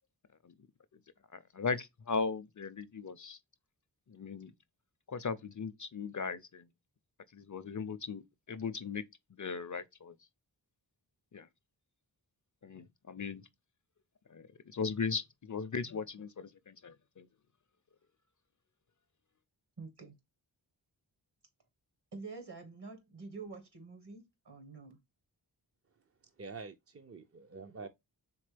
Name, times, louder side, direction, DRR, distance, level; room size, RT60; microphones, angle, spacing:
voice 1, 1.3-3.4 4.1-4.5 5.1-6.7 7.3-9.0 9.3-10.2 11.3-11.5 12.6-13.4 14.3-17.3, left 5 dB, 45° left, 0.5 m, -38 dB
voice 2, 19.8-20.2 22.1-25.0, right 4 dB, 60° right, 1.5 m, -47 dB
voice 3, 26.4-27.9, right 4 dB, 35° right, 0.4 m, -46 dB
4.3 x 3.5 x 3.3 m
wide cardioid pair, 55°, 45 cm